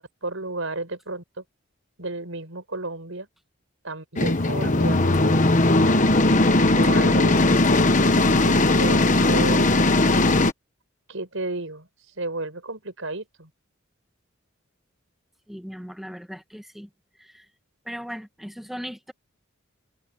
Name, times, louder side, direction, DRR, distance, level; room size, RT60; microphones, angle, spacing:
voice 1, 0.0-1.4 2.0-3.3 3.8-5.5 6.6-7.9 8.4-9.7 11.1-11.9 12.2-13.5, right 2 dB, 70° right, 5.6 m, -33 dB
sound 1, 4.2-10.5, left 2 dB, 35° left, 1.2 m, -18 dB
voice 2, 15.5-16.9 17.2-17.4 17.8-19.1, equal, ahead, 1.5 m, -38 dB
head